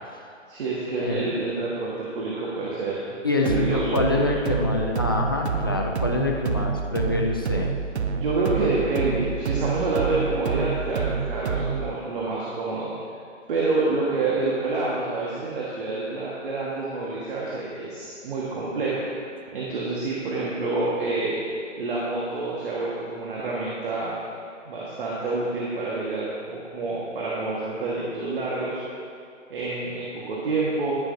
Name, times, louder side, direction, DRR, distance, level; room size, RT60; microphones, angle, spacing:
voice 1, 0.5-3.2 3.4-4.3 8.1-12.9 13.5-19.0 19.5-21.4 21.8-24.1 24.6-28.8 29.5-31.0, right 3 dB, 45° right, -6 dB, 1.6 m, -27 dB
voice 2, 3.2-7.7, left 2 dB, 20° left, 0 dB, 0.4 m, -25 dB
sound 1, 3.4-11.9, right 5 dB, 60° right, 0.7 m, -28 dB
11.0 x 10.5 x 2.7 m, 2.3 s
figure-of-eight pair, 140°, 38 cm